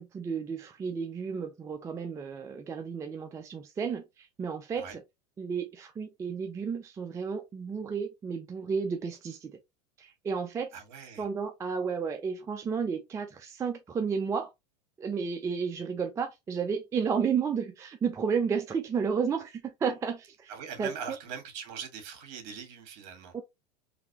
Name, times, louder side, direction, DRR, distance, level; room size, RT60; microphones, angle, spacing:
voice 1, 0.0-5.0 5.4-9.6 10.0-10.7 11.2-14.5 15.0-20.5 20.8-20.9 23.3-23.4, right 6 dB, 15° right, 0.4 m, -32 dB
voice 2, 10.7-11.3 20.5-23.3, right 7 dB, 60° right, 1.5 m, -41 dB
3.9 x 2.6 x 2.8 m
supercardioid pair, 120°, 21 cm